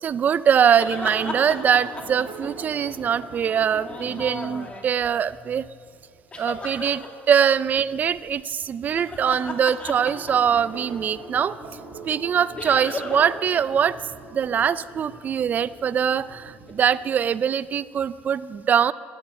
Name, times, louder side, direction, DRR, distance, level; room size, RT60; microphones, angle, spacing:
voice 1, 0.0-5.6 6.4-11.6 12.1-14.0 14.3-18.9, right 8 dB, 35° right, 17 dB, 0.4 m, -22 dB
sound 1, 0.6-3.0 3.7-5.1 6.3-7.1 8.8-10.8 12.5-13.4 13.7-13.8 16.7-16.8, left 2 dB, 25° left, 2.2 m, -35 dB
sound 2, 0.8-7.0 7.6-8.2 8.8-9.4 10.0-16.9, right 2 dB, 65° right, 5.1 m, -42 dB
14.5 x 11.0 x 8.8 m, 2.1 s
cardioid pair, 115°, 5 cm